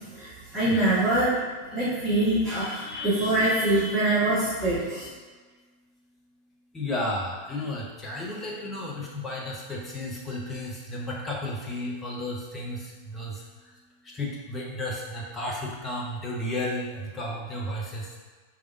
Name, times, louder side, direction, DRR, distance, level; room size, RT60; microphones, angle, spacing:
voice 1, 0.1-1.4 1.7-5.1, right 1 dB, 15° right, -12 dB, 1.4 m, -24 dB
voice 2, 6.7-12.8 13.1-13.3 14.2-18.0, left 1 dB, 15° left, -3 dB, 0.8 m, -33 dB
4.7 x 2.4 x 2.6 m, 1.4 s
figure-of-eight pair, 90°, 0 cm